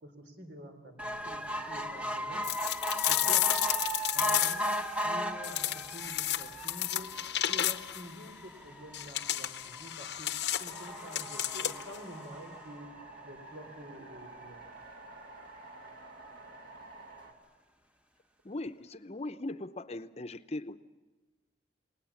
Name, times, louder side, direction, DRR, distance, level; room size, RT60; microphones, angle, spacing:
voice 1, 0.0-2.4 3.1-3.4 4.1-4.7 5.0-7.1 7.5-10.3 10.6-12.9 13.2-14.6, equal, 80° right, 6 dB, 3.7 m, -47 dB
sound 1, 1.0-13.6 14.2-14.3 14.5-14.6 14.9-15.0, equal, 5° right, 1.0 m, -37 dB
sound 2, 2.4-4.8 5.4-8.1 8.9-12.0, left 12 dB, 75° left, 0.8 m, -32 dB
sound 3, 10.6-17.3, right 2 dB, 55° right, 2.3 m, -50 dB
voice 2, 18.4-20.8, left 2 dB, 35° left, 11 dB, 0.7 m, -39 dB
28.5 x 19.5 x 7.2 m, 1.3 s
head